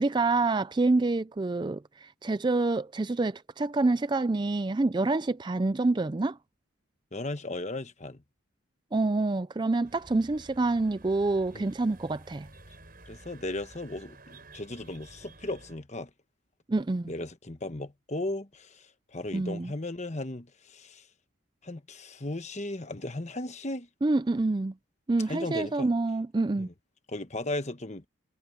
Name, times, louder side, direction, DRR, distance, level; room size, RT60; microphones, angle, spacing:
voice 1, 0.0-6.4 8.9-12.5 16.7-17.1 19.3-19.7 24.0-24.7 25.1-26.7, right 3 dB, 20° right, 0.4 m, -27 dB
voice 2, 7.1-8.2 11.5-11.7 13.1-16.1 17.0-21.1 21.6-23.9 25.3-25.9 26.6-26.7 27.1-28.0, left 2 dB, 35° left, 1.2 m, -36 dB
sound 1, 9.8-15.8, right 2 dB, 45° right, 6.7 m, -52 dB
head